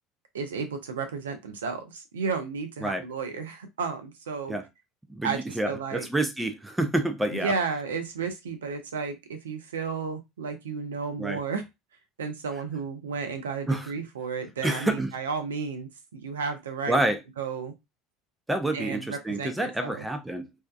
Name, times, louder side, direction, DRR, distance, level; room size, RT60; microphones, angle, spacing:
voice 1, 0.3-4.6 5.2-6.1 7.3-11.6 12.2-17.0 17.4-17.7 18.7-20.0, right 5 dB, 85° right, 0.5 m, -33 dB
voice 2, 5.1-7.5 11.2-11.4 13.7-14.0 14.6-15.2 16.9-17.2 18.5-20.6, right 1 dB, 10° right, 0.6 m, -28 dB
2.7 x 2.2 x 2.2 m
hypercardioid pair, 70°, 0 cm